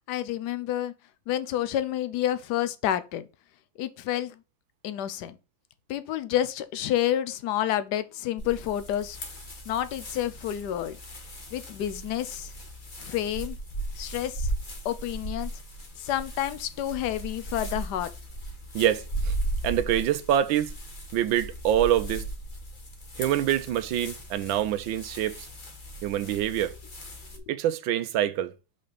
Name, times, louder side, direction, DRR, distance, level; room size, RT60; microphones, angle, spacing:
voice 1, 0.1-0.9 1.3-3.3 3.8-4.4 4.8-5.4 5.9-9.2 9.7-11.0 11.5-12.5 13.0-13.6 14.0-14.5 14.8-15.5 16.0-18.1, left 12 dB, 70° left, 1.2 m, -29 dB
sound 1, 8.4-27.4, right 1 dB, 30° left, 1.3 m, -37 dB
voice 2, 18.7-19.3 19.6-20.7 21.1-22.3 23.2-25.5 26.0-26.7 27.5-28.5, right 11 dB, 85° right, 1.5 m, -25 dB
5.4 x 4.2 x 5.1 m
omnidirectional pair, 2.1 m